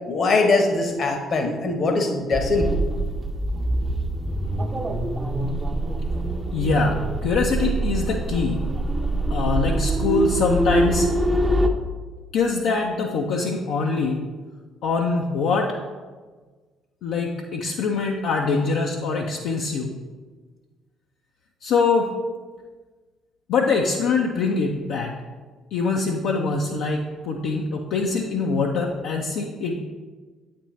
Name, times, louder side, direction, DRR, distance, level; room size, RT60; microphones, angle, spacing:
voice 1, 0.1-2.7, left 3 dB, 50° left, 4 dB, 0.9 m, -21 dB
sound 1, 2.3-11.7, right 1 dB, 25° right, 0.6 m, -24 dB
voice 2, 6.5-8.6 9.3-11.1 12.3-14.2 14.8-15.8 17.0-19.9 21.6-22.1 23.5-25.2 25.7-29.9, left 4 dB, 65° left, 0 dB, 0.4 m, -23 dB
8.1 x 4.2 x 3.1 m, 1.4 s
hypercardioid pair, 50°, 0 cm